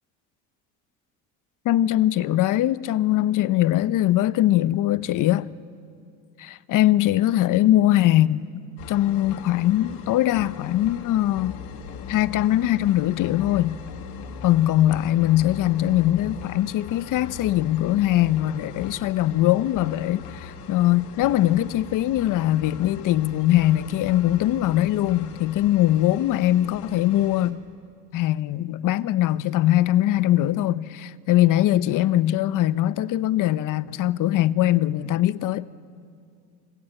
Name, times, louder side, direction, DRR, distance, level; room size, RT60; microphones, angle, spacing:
voice 1, 1.6-5.5 6.4-8.4 8.9-11.6 12.1-13.8 14.4-27.6 28.1-35.7, left 14 dB, 60° left, 0.9 m, -21 dB
sound 1, 8.8-27.5, left 7 dB, 80° left, 2.6 m, -40 dB
28.5 x 25.0 x 7.7 m
supercardioid pair, 95°, 36 cm